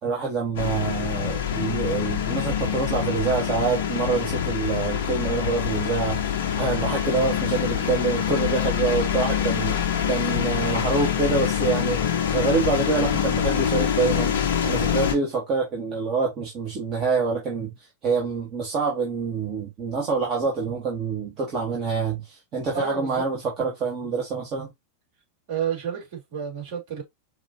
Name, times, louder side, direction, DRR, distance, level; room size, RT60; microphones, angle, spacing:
voice 1, 0.0-9.8 10.1-14.3 14.6-17.7 18.0-24.7, right 4 dB, 35° right, 1.6 m, -26 dB
sound 1, 0.6-15.2, left 8 dB, 55° left, 0.7 m, -25 dB
voice 2, 22.7-23.3 25.5-27.0, right 7 dB, 50° right, 3.0 m, -30 dB
5.2 x 2.7 x 2.7 m
figure-of-eight pair, 90°, 0 cm